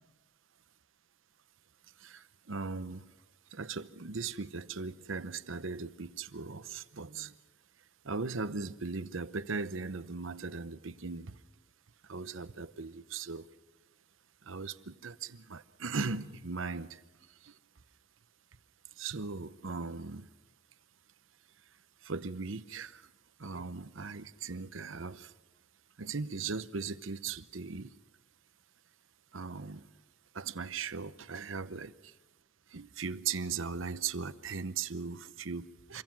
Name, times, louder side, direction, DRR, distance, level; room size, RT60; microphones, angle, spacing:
voice 1, 2.0-3.1 3.5-7.3 8.0-11.4 12.1-13.5 14.5-17.0 17.4-17.5 19.0-20.3 22.0-23.0 23.4-25.3 26.0-28.0 29.3-29.9 30.3-32.1 32.7-36.0, right 4 dB, 75° right, 0.9 m, -38 dB
26.5 x 22.5 x 6.1 m
head